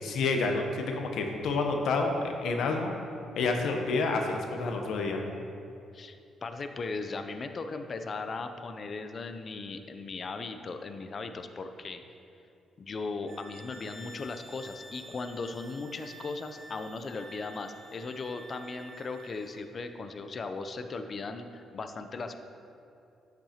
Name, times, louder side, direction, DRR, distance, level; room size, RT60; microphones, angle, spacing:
voice 1, 0.0-2.9 3.4-5.2, left 3 dB, 75° left, 3 dB, 0.9 m, -29 dB
voice 2, 5.9-12.0 12.8-22.4, left 3 dB, 40° left, 8 dB, 0.5 m, -38 dB
sound 1, 13.3-19.7, right 1 dB, 75° right, 1.3 m, -50 dB
10.5 x 5.9 x 2.9 m, 2.6 s
cardioid pair, 90°, 0 cm